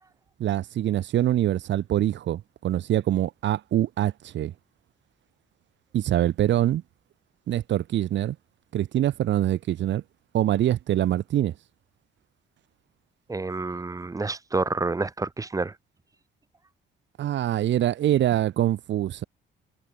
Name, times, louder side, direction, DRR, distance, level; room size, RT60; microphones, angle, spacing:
voice 1, 0.4-4.5 5.9-6.8 7.5-8.4 8.7-10.0 10.3-11.5 17.2-19.2, right 12 dB, 65° right, 0.9 m, -24 dB
voice 2, 13.3-15.7, right 3 dB, 15° right, 0.7 m, -28 dB
cardioid pair, 90°, 20 cm